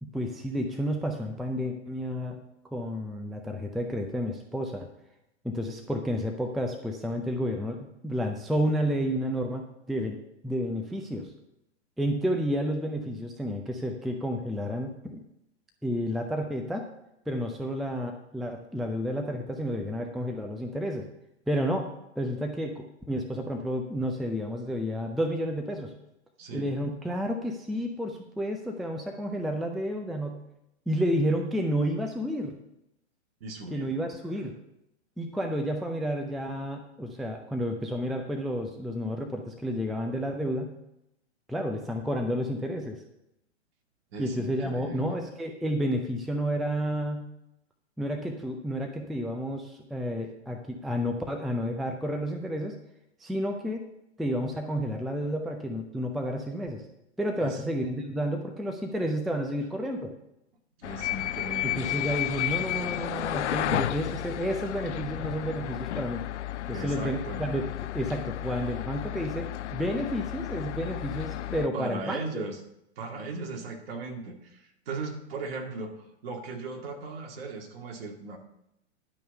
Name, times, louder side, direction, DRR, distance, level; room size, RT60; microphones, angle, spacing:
voice 1, 0.0-2.4 2.7-4.9 5.4-10.2 10.4-11.3 12.0-15.2 15.8-16.9 17.3-21.1 21.5-21.9 22.2-25.9 26.5-30.4 30.9-32.6 33.7-34.5 35.2-40.7 41.5-43.0 44.2-47.3 48.0-52.8 53.2-53.9 54.2-56.8 57.2-60.1 61.6-66.2 66.7-67.6 67.9-72.4, equal, ahead, 3 dB, 0.4 m, -31 dB
voice 2, 33.4-33.9 44.1-45.2 57.4-57.6 60.8-62.0 66.7-67.4 71.5-72.6 73.0-78.4, right 3 dB, 55° right, 2 dB, 2.3 m, -38 dB
sound 1, 60.8-71.7, left 13 dB, 75° left, 0.5 m, -32 dB
11.0 x 5.4 x 6.8 m, 0.82 s
hypercardioid pair, 120°, 35 cm